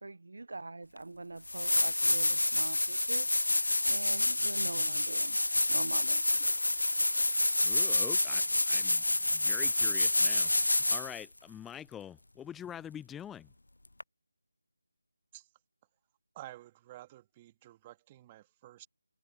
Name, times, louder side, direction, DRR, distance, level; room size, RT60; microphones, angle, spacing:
voice 1, 0.0-3.3 3.9-5.4 5.7-6.2, right 3 dB, 65° right, 0.5 m, -43 dB
sound 1, 1.0-1.1 1.4-11.2 14.0-14.1, left 2 dB, 80° left, 0.4 m, -28 dB
voice 2, 7.6-9.0 9.3-13.5, left 9 dB, 5° left, 0.4 m, -45 dB
voice 3, 16.3-18.9, right 15 dB, 15° right, 2.0 m, -51 dB
figure-of-eight pair, 165°, 0 cm